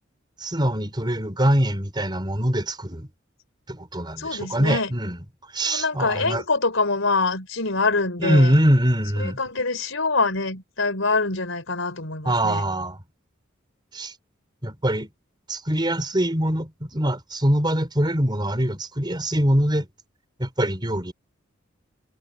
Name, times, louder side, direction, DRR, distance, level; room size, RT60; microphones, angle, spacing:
voice 1, 0.4-3.1 3.7-5.2 5.5-6.4 8.2-9.4 12.2-13.0 13.9-14.1 14.6-15.1 15.5-19.9 20.4-21.1, equal, 20° right, 4.5 m, -23 dB
voice 2, 4.2-4.9 5.7-8.6 9.2-12.6, left 3 dB, 80° left, 4.2 m, -25 dB
head